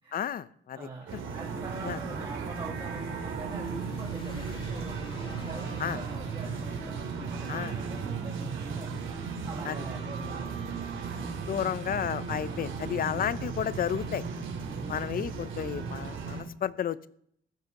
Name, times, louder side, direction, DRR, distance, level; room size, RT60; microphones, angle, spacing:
voice 1, 0.1-0.9 1.8-2.0 5.8-6.0 7.5-7.7 9.6-9.8 11.5-14.2 14.9-17.1, left 9 dB, 45° left, 17 dB, 0.6 m, -32 dB
voice 2, 0.7-5.0 5.4-8.9 9.5-10.8 13.1-13.4 14.7-15.4, right 3 dB, 25° right, -2 dB, 2.1 m, -43 dB
sound 1, 1.1-16.4, right 5 dB, 75° right, 3.3 m, -36 dB
sound 2, 1.9-8.5, left 2 dB, 25° left, 2.2 m, -49 dB
15.0 x 11.0 x 5.9 m, 0.68 s
cardioid pair, 165°, 20 cm